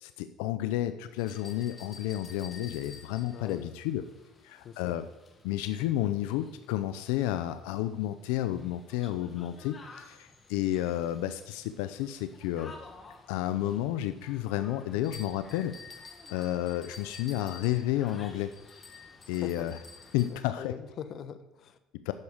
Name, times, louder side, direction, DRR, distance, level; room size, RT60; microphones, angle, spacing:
voice 1, 0.0-4.1 4.4-5.0 5.4-12.7 13.3-15.7 16.3-18.5 19.3-19.8 20.1-20.8 21.9-22.1, left 13 dB, 90° left, 11 dB, 0.5 m, -31 dB
sound 1, 1.2-20.3, left 4 dB, 30° left, 1.7 m, -51 dB
voice 2, 3.3-3.7 4.6-5.0 19.3-19.7 20.3-21.8, left 8 dB, 50° left, 12 dB, 0.9 m, -42 dB
10.5 x 7.2 x 5.0 m, 1.1 s
cardioid pair, 110°, 0 cm